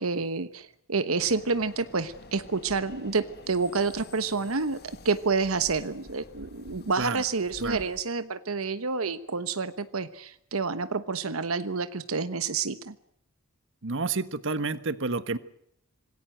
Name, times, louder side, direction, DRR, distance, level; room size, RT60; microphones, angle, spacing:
voice 1, 0.0-12.9, right 4 dB, 80° right, 12 dB, 1.1 m, -29 dB
sound 1, 1.2-8.0, left 2 dB, 50° left, 1.9 m, -49 dB
voice 2, 13.8-15.4, right 3 dB, 60° right, 14 dB, 1.3 m, -29 dB
26.5 x 19.5 x 7.8 m, 0.73 s
head